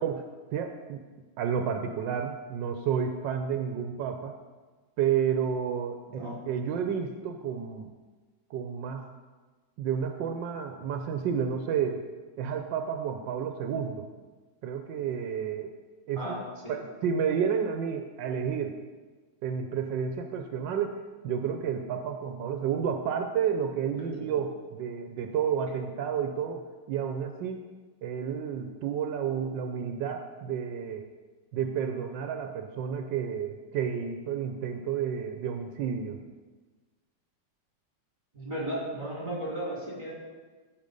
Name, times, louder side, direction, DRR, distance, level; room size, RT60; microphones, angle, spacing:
voice 1, 0.5-1.0 1.4-4.3 5.0-7.9 8.5-9.1 9.8-12.0 12.4-14.1 14.6-15.8 16.1-16.4 16.7-18.8 19.4-21.0 21.2-27.6 28.0-31.1 31.5-36.2, right 7 dB, 85° right, 6 dB, 1.4 m, -31 dB
voice 2, 6.1-6.4 16.2-16.8 23.9-24.4 38.3-40.1, right 1 dB, 25° right, -6 dB, 4.1 m, -35 dB
15.0 x 5.3 x 5.3 m, 1.3 s
omnidirectional pair, 1.9 m